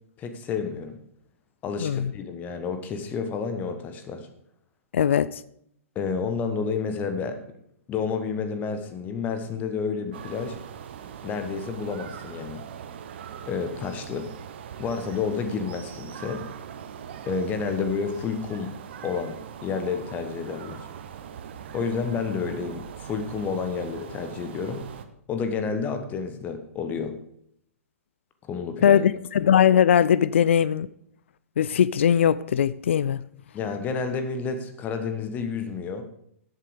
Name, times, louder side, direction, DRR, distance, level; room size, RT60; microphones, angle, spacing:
voice 1, 0.2-1.0 1.6-4.3 5.9-7.4 7.9-10.6 11.2-12.6 13.5-14.3 14.8-16.4 17.2-18.7 19.0-19.4 19.6-20.9 21.7-24.9 25.3-27.1 28.5-29.0 33.5-36.0, left 5 dB, 20° left, 8 dB, 1.2 m, -30 dB
voice 2, 1.8-2.1 4.9-5.4 28.8-30.9 31.6-33.2, left 9 dB, 55° left, 18 dB, 0.4 m, -20 dB
sound 1, 10.1-25.1, right 8 dB, 50° right, 1.1 m, -41 dB
13.0 x 8.4 x 5.0 m, 0.71 s
figure-of-eight pair, 110°, 8 cm